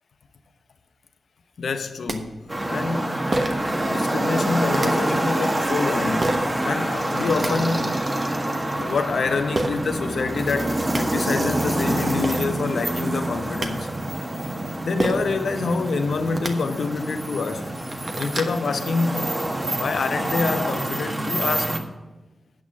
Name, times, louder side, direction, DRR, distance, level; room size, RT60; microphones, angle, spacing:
voice 1, 1.6-2.4 2.7-3.4 3.9-8.0 8.8-13.9 14.8-17.6 18.2-19.5 19.7-21.8, left 4 dB, 75° left, 0.8 m, -26 dB
sound 1, 2.1-2.2 3.3-3.7 4.7-4.9 6.2-6.5 7.1-7.5 9.5-9.7 10.5-10.6 10.8-11.0 11.9-12.0 12.2-12.5 13.3-13.7 15.0-15.3 16.3-16.5 17.2-17.3 17.7-18.6, right 2 dB, 50° right, 1.2 m, -27 dB
sound 2, 2.5-21.8, right 1 dB, 25° right, 1.2 m, -26 dB
8.8 x 6.1 x 7.5 m
cardioid pair, 60°, 0 cm